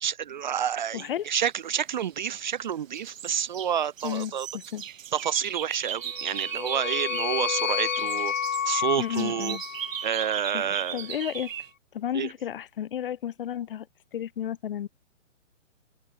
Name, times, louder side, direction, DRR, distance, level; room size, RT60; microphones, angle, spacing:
voice 1, 0.0-4.5 5.1-8.3 8.7-9.6 10.0-11.0 12.1-12.3, right 9 dB, 35° right, 0.6 m, -29 dB
voice 2, 0.9-1.3 4.0-4.8 9.0-9.6 10.5-11.5 11.9-13.9 14.1-14.9, left 10 dB, 45° left, 0.9 m, -32 dB
sound 1, 1.8-2.6 2.9-7.4 7.7-11.7, right 10 dB, 90° right, 0.7 m, -37 dB
sound 2, 6.0-10.4, left 8 dB, 85° left, 1.0 m, -30 dB
open air
hypercardioid pair, 155°, 38 cm